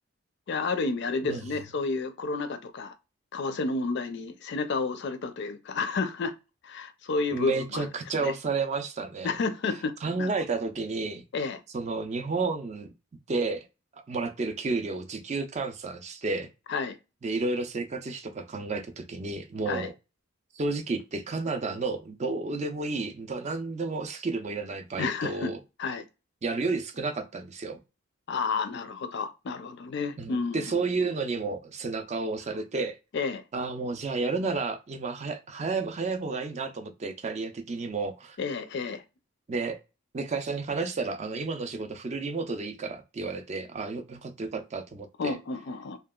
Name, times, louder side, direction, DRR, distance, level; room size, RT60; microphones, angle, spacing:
voice 1, 0.5-3.0 3.3-6.3 6.6-7.9 8.2-8.3 9.2-10.3 11.3-11.6 16.7-17.0 19.7-19.9 25.0-25.5 25.8-26.0 28.3-30.7 33.1-33.4 38.4-39.0 45.2-46.0, left 4 dB, 55° left, 0.4 m, -31 dB
voice 2, 7.3-9.3 10.0-11.2 11.7-12.9 13.3-13.7 13.9-16.5 17.2-19.9 20.5-25.6 26.4-27.8 30.2-33.0 33.5-38.4 39.5-39.8 40.1-45.4, right 3 dB, 30° right, 0.4 m, -31 dB
2.8 x 2.3 x 2.2 m
head